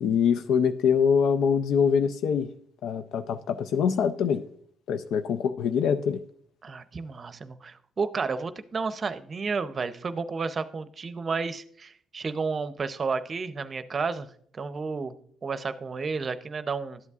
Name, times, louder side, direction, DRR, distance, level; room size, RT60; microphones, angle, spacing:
voice 1, 0.0-2.5 2.8-4.4 4.9-6.2, left 7 dB, 80° left, 10 dB, 0.4 m, -24 dB
voice 2, 6.6-14.3 14.5-15.1 15.4-17.0, right 4 dB, 40° right, 12 dB, 0.6 m, -31 dB
12.5 x 8.1 x 2.4 m, 0.63 s
cardioid pair, 90°, 0 cm